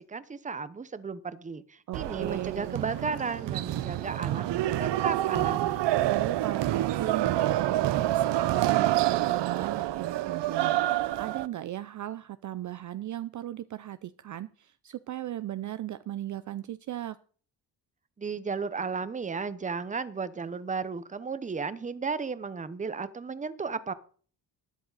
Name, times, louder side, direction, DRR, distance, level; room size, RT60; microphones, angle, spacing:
voice 1, 0.0-6.0 18.2-23.9, right 5 dB, 20° right, 15 dB, 0.7 m, -34 dB
voice 2, 1.9-2.8 6.0-17.2, right 13 dB, 50° right, 13 dB, 0.5 m, -37 dB
sound 1, 1.9-11.5, right 14 dB, 85° right, 0.7 m, -27 dB
13.0 x 10.5 x 4.0 m, 0.43 s
cardioid pair, 150°, 41 cm